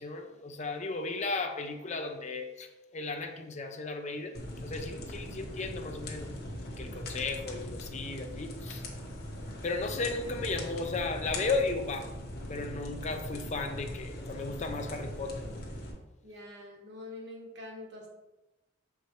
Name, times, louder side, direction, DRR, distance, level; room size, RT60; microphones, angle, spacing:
voice 1, 0.0-6.3 6.8-8.8 9.6-12.1 12.5-15.7, left 3 dB, 35° left, 6 dB, 0.5 m, -35 dB
sound 1, 4.3-15.9, left 1 dB, 55° left, 1.1 m, -40 dB
voice 2, 16.2-18.1, left 2 dB, 60° right, -1 dB, 1.5 m, -45 dB
6.8 x 4.6 x 3.1 m, 1.0 s
head